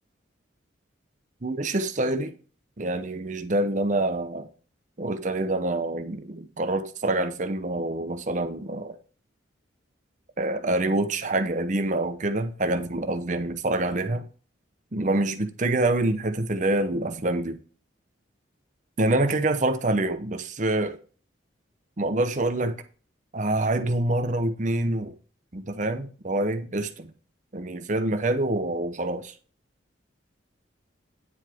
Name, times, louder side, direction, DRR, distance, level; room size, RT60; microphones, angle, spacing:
voice 1, 1.4-2.3 2.8-4.5 5.0-9.0 10.4-14.2 14.9-17.6 19.0-21.0 22.0-22.8 23.3-25.1 25.5-27.1 27.5-29.3, right 2 dB, 40° right, 0.8 m, -26 dB
9.6 x 8.0 x 3.5 m
head